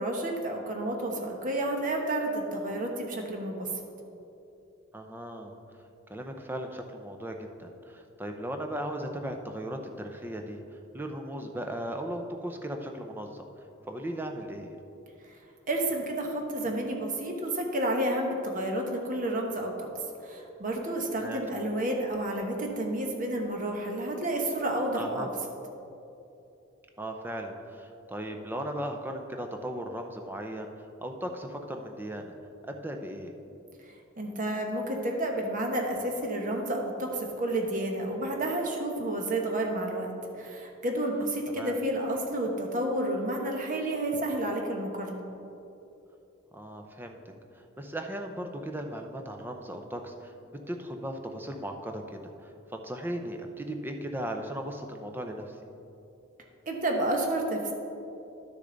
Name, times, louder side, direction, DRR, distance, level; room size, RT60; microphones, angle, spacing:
voice 1, 0.0-3.7 15.3-15.4 15.7-19.9 20.2-25.3 34.2-45.2 56.7-57.7, right 1 dB, 40° right, 2 dB, 1.1 m, -30 dB
voice 2, 4.9-5.5 6.1-10.6 10.9-13.4 13.9-14.7 21.2-21.4 24.9-25.3 27.0-30.7 31.0-32.3 32.7-33.3 41.5-41.8 46.5-47.2 47.5-55.5, right 1 dB, 10° right, 4 dB, 0.6 m, -37 dB
11.5 x 6.6 x 3.9 m, 2.9 s
head